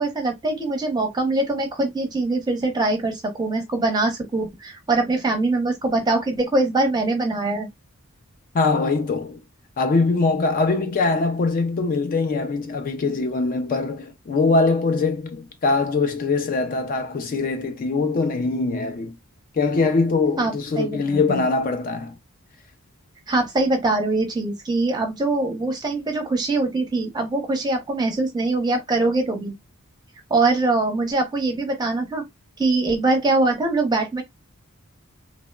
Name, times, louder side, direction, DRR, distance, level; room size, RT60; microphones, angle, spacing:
voice 1, 0.0-7.7 20.4-21.4 23.3-29.5 30.3-32.2 32.6-34.2, right 2 dB, 20° right, 0.6 m, -23 dB
voice 2, 8.5-9.4 9.8-19.1 19.5-22.1, left 3 dB, 40° left, 0.3 m, -22 dB
2.8 x 2.0 x 2.2 m
head